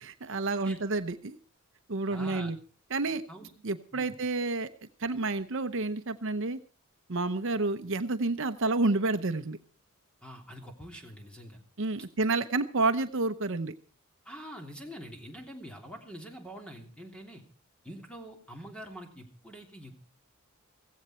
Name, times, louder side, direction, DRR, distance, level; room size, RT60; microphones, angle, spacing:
voice 1, 0.0-1.4 1.9-2.6 2.9-3.2 3.6-4.7 5.0-6.6 7.1-9.6 11.8-13.7, right 3 dB, 60° right, 10 dB, 0.9 m, -29 dB
voice 2, 2.1-2.5 3.3-3.5 3.9-4.2 10.2-11.6 14.2-17.4 17.8-20.0, equal, 5° left, 2 dB, 3.1 m, -45 dB
16.0 x 16.0 x 4.4 m, 0.37 s
head